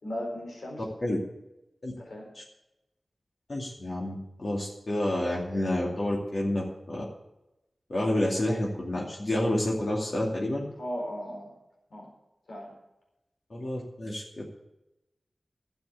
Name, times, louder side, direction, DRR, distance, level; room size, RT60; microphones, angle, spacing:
voice 1, 0.0-0.8 2.0-2.3 10.8-11.5 11.9-12.1 12.5-12.7, equal, 90° left, -1 dB, 4.2 m, -36 dB
voice 2, 3.5-7.0 7.9-10.6 13.5-14.5, left 1 dB, 60° left, -4 dB, 2.5 m, -29 dB
12.0 x 7.9 x 8.3 m, 0.92 s
wide cardioid pair, 55°, 0 cm